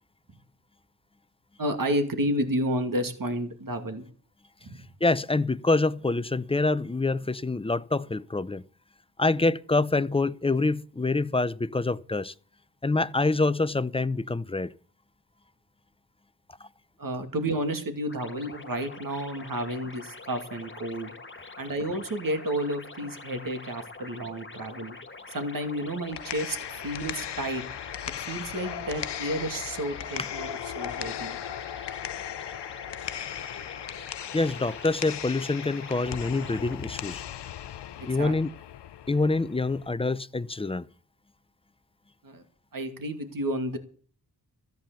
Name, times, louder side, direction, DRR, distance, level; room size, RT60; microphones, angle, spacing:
voice 1, 1.6-4.0 4.6-4.8 17.0-21.1 21.6-25.0 25.3-26.6 26.8-27.6 28.3-31.4 38.0-38.3 42.2-42.4 42.7-43.8, right 1 dB, 55° right, 2.5 m, -31 dB
voice 2, 5.0-8.6 9.2-12.3 12.8-14.7 16.6-16.7 34.3-37.2 38.0-38.5 39.1-40.9, left 3 dB, 15° left, 0.6 m, -26 dB
sound 1, 18.1-36.8, left 3 dB, 30° left, 1.9 m, -45 dB
sound 2, 25.9-39.9, left 10 dB, 85° left, 0.7 m, -38 dB
14.0 x 9.3 x 6.9 m
wide cardioid pair, 75°, 40 cm